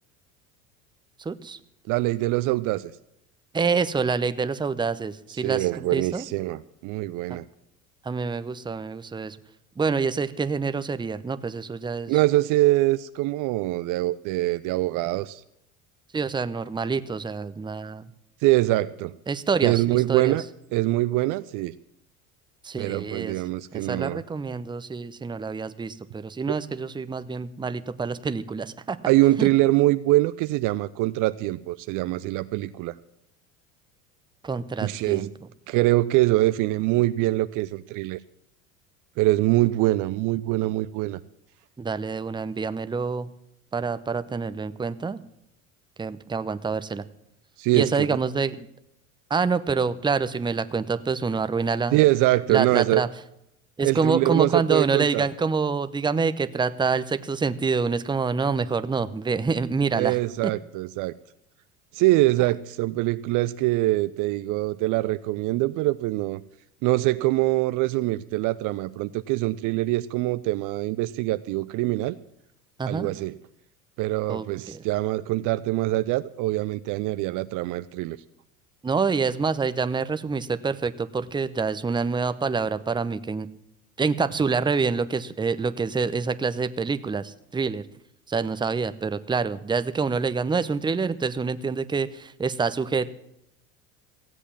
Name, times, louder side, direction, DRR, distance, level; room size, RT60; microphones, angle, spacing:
voice 1, 1.2-1.6 3.5-6.2 8.0-9.4 9.8-12.2 16.1-18.1 19.3-20.4 22.6-23.3 23.7-29.0 29.4-29.5 34.4-35.3 41.8-43.3 43.7-45.2 46.0-47.0 47.7-48.7 49.3-52.0 52.5-53.1 53.8-60.2 60.4-60.5 72.8-73.1 74.3-74.8 78.8-83.5 84.0-87.8 88.3-93.1, right 5 dB, 10° right, 12 dB, 0.7 m, -27 dB
voice 2, 1.9-2.9 5.4-7.4 12.1-15.4 18.4-19.1 19.6-20.4 20.7-21.7 22.8-24.2 26.5-26.6 29.1-32.9 34.8-35.3 35.7-38.2 39.2-41.2 47.6-48.2 51.9-53.0 53.8-55.3 59.9-61.1 61.9-66.4 66.8-72.1 72.9-73.3 74.0-78.2, right 18 dB, 50° right, 14 dB, 0.6 m, -24 dB
15.5 x 8.2 x 7.3 m, 0.78 s
hypercardioid pair, 75°, 42 cm